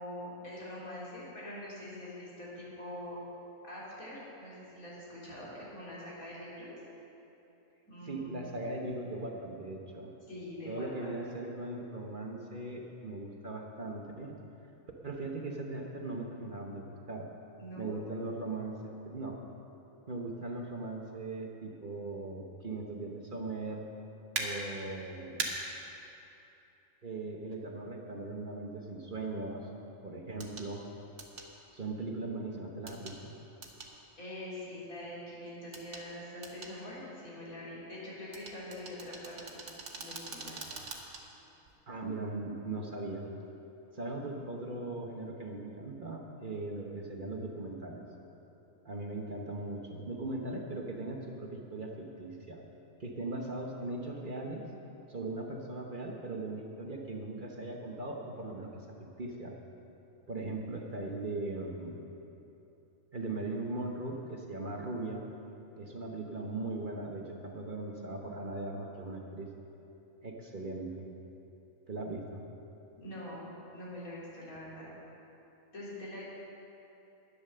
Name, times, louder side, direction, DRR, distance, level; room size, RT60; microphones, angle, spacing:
voice 1, 0.0-3.2 3.6-6.7 7.9-8.5 10.3-11.1 17.6-18.0 34.2-39.7 40.0-40.6 73.0-73.5 73.7-74.9 75.7-76.2, left 1 dB, 85° left, -8 dB, 4.0 m, -44 dB
voice 2, 8.0-10.1 10.6-14.4 15.0-17.3 17.8-19.4 20.1-23.8 24.4-25.5 27.0-29.7 30.0-30.8 31.7-33.3 41.9-43.3 43.9-48.1 48.8-52.6 53.0-54.6 55.1-58.9 59.2-59.5 60.3-62.0 63.1-65.2 65.8-69.5 70.2-71.1 71.9-72.4, right 2 dB, 40° right, 0 dB, 1.1 m, -39 dB
sound 1, 24.3-24.5 25.4-25.5 27.5-27.6 30.4-30.7 31.2-31.5 32.9-33.2 33.6-33.9 35.7-36.0 36.4-36.7 38.3-41.2 41.7-41.8, right 4 dB, 75° right, 1.7 m, -40 dB
11.0 x 9.9 x 6.7 m, 3.0 s
omnidirectional pair, 1.4 m